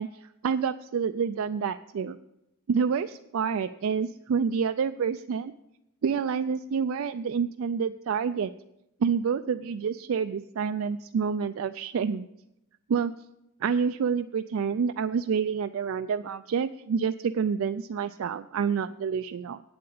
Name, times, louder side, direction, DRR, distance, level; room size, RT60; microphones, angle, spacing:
voice 1, 0.0-2.2 2.7-5.5 6.0-8.5 9.0-12.3 12.9-13.1 13.6-19.6, right 6 dB, 65° right, 9 dB, 0.3 m, -28 dB
8.7 x 7.7 x 8.5 m, 0.86 s
head